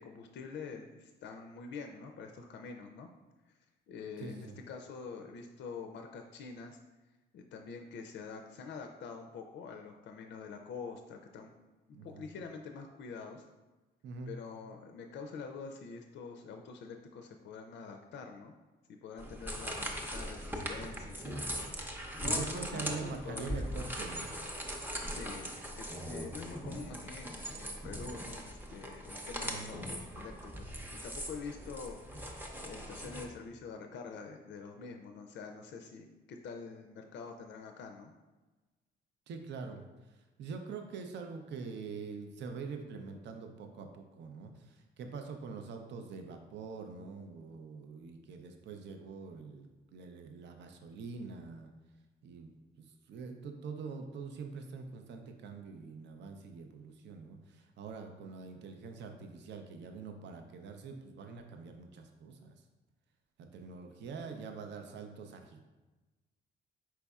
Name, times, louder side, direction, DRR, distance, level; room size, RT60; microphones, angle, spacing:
voice 1, 0.0-3.1 3.9-6.8 7.3-11.5 12.0-13.5 14.3-18.5 19.0-21.4 22.2-23.9 25.1-38.1, left 5 dB, 65° left, 4 dB, 0.4 m, -46 dB
voice 2, 4.2-4.6 11.9-12.2 14.0-14.3 22.2-24.3 29.4-29.7 39.3-49.7 49.9-51.7 52.2-62.5 63.4-65.6, right 5 dB, 65° right, 5 dB, 0.5 m, -44 dB
sound 1, 19.2-33.2, equal, 10° right, 0.6 m, -40 dB
4.5 x 4.0 x 2.3 m, 1.2 s
cardioid pair, 90°, 20 cm